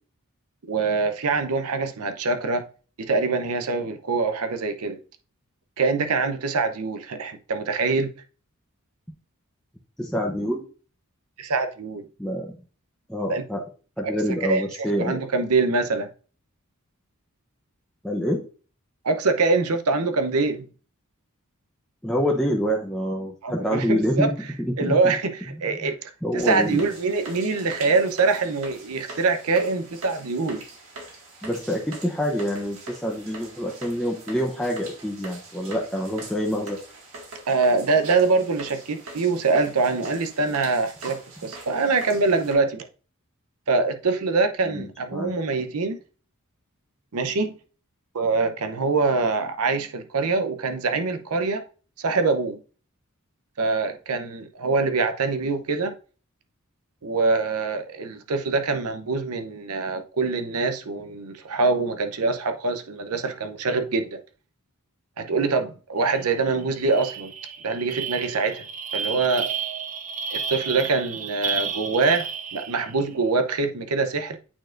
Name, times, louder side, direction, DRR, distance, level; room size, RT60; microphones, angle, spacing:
voice 1, 0.7-2.6 3.0-5.0 5.8-8.1 11.4-12.1 13.3-13.4 14.0-14.1 14.4-16.1 19.0-20.7 23.4-24.3 24.8-30.6 37.5-42.9 43.7-46.0 47.1-47.6 48.1-51.6 52.0-52.6 53.6-55.9 57.0-64.2 65.2-67.3 67.6-68.6 68.9-69.5 70.3-74.4, right 3 dB, 85° right, 0.7 m, -24 dB
voice 2, 10.0-10.7 12.2-12.6 13.1-13.6 14.0-15.2 18.0-18.4 22.0-24.3 24.6-25.2 25.7-25.9 26.2-26.8 31.4-36.8 44.7-45.3, equal, 5° left, 0.7 m, -26 dB
sound 1, 26.4-42.5, right 2 dB, 70° right, 1.9 m, -43 dB
sound 2, 66.1-66.3 66.6-73.0, right 6 dB, 35° right, 0.5 m, -32 dB
8.7 x 4.3 x 2.5 m
head